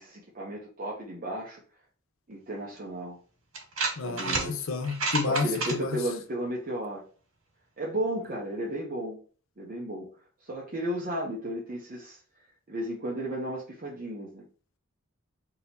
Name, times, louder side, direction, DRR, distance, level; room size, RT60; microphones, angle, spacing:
voice 1, 0.0-1.6 2.3-3.2 4.0-4.6 5.2-7.0 7.8-9.2 9.6-10.1 10.4-12.2 12.7-14.4, right 1 dB, 40° right, 0.8 m, -34 dB
sound 1, 2.8-2.9 3.5-4.5 4.8-5.7, right 3 dB, 65° right, 1.7 m, -29 dB
voice 2, 4.0-5.9, left 3 dB, 65° left, 0.6 m, -30 dB
3.8 x 2.9 x 4.0 m
head